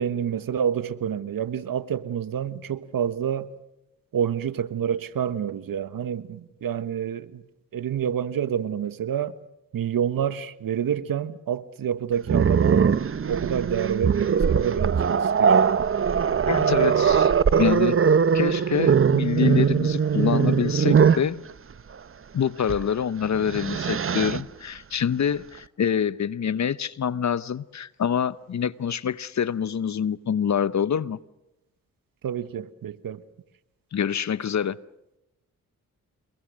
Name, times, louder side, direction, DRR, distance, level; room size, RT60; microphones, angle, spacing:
voice 1, 0.0-3.5 4.1-7.4 7.7-9.4 9.7-13.0 13.3-15.6 32.2-33.2, right 8 dB, 70° right, 1.3 m, -28 dB
Growling, 12.3-21.3 22.6-22.8 23.3-24.4, right 7 dB, 35° right, 0.8 m, -21 dB
voice 2, 16.5-17.3 17.6-18.0 18.3-21.4 22.3-31.2 33.9-34.8, left 8 dB, 50° left, 0.9 m, -26 dB
28.5 x 22.0 x 6.4 m
cardioid pair, 60°, 36 cm